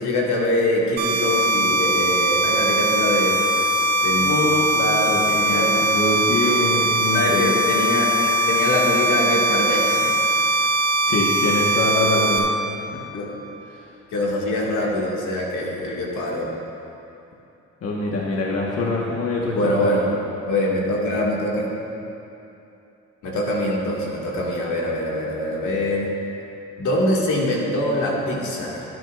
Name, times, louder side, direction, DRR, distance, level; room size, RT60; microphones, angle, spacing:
voice 1, 0.0-3.4 4.0-4.3 5.3-5.7 7.1-10.0 13.1-13.3 14.1-16.5 19.5-20.1 20.5-21.7 23.2-26.1 26.8-28.9, left 1 dB, 80° left, -3 dB, 2.1 m, -23 dB
sound 1, 1.0-12.4, right 1 dB, 60° right, 2.5 m, -21 dB
voice 2, 4.2-7.5 11.1-12.5 12.9-13.0 17.8-19.5 19.8-19.9, left 2 dB, 55° left, -3 dB, 1.5 m, -24 dB
17.5 x 9.7 x 2.5 m, 2.8 s
cardioid pair, 90°, 30 cm